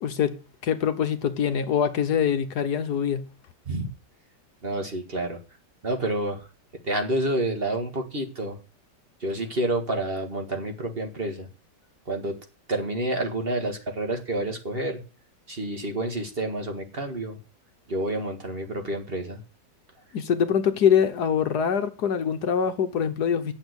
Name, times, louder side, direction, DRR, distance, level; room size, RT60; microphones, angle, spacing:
voice 1, 0.0-3.3 20.1-23.5, left 8 dB, 65° left, 1.5 m, -24 dB
voice 2, 4.6-5.4 5.8-6.5 6.8-8.6 9.2-11.5 12.1-12.4 12.7-15.0 15.5-17.4 17.9-19.4, right 1 dB, 35° right, 1.9 m, -29 dB
9.0 x 7.3 x 8.0 m
omnidirectional pair, 1.9 m